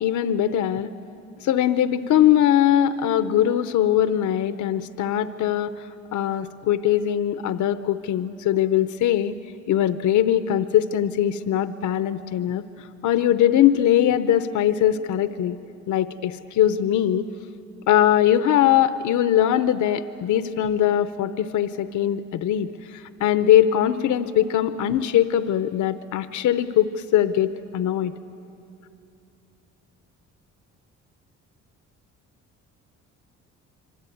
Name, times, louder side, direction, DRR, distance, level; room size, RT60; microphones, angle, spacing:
voice 1, 0.0-0.9 1.4-9.3 9.7-15.6 15.9-17.3 17.9-28.1, left 11 dB, 75° left, 12 dB, 0.8 m, -21 dB
25.5 x 24.0 x 9.3 m, 2.8 s
cardioid pair, 90°, 30 cm